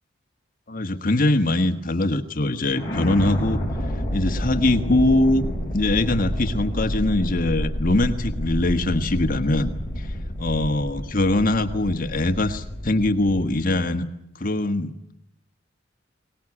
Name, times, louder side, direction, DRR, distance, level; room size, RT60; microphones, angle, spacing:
voice 1, 0.7-3.6 4.1-5.4 5.7-9.7 10.0-10.1 10.4-14.0 14.4-14.9, left 2 dB, 45° left, 6 dB, 1.4 m, -22 dB
sound 1, 2.7-13.8, equal, 15° left, 5.1 m, -29 dB
22.5 x 19.5 x 9.9 m, 0.80 s
head